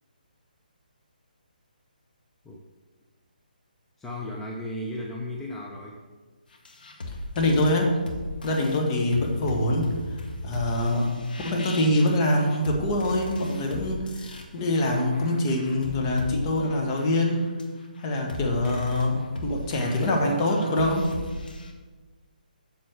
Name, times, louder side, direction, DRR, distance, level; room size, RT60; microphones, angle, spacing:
voice 1, 4.0-6.0, left 1 dB, 5° left, -3 dB, 0.7 m, -35 dB
sound 1, 6.5-21.7, left 1 dB, 70° left, 1.8 m, -38 dB
voice 2, 7.4-8.0 8.4-17.5 18.0-21.1, left 1 dB, 30° left, 1 dB, 1.8 m, -24 dB
7.9 x 6.9 x 6.6 m, 1.4 s
hypercardioid pair, 150°, 5 cm